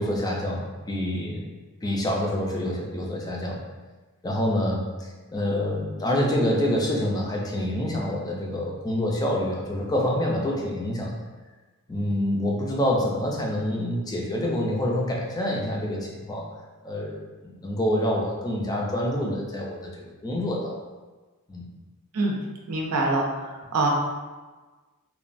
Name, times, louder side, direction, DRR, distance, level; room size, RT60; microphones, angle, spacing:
voice 1, 0.0-1.4 1.8-3.6 4.2-11.1 11.9-16.4 16.8-17.2 17.4-20.8 21.5-21.7, left 1 dB, 15° left, -2 dB, 0.4 m, -27 dB
voice 2, 22.7-23.9, right 2 dB, 75° right, 0 dB, 0.5 m, -25 dB
2.9 x 2.2 x 2.5 m, 1.3 s
head